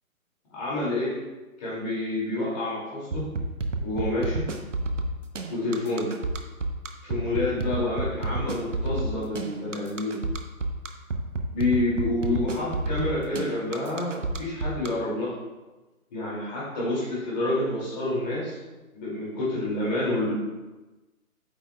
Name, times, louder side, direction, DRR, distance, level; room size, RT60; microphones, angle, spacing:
voice 1, 0.5-1.3 1.6-3.3 3.8-4.5 5.5-6.1 7.0-10.2 11.5-15.3 16.1-18.6 18.9-20.3, left 2 dB, 30° left, -7 dB, 2.5 m, -28 dB
sound 1, 3.1-14.9, right 2 dB, 60° right, 0.9 m, -29 dB
8.9 x 7.3 x 2.3 m, 1.1 s
figure-of-eight pair, 145°, 43 cm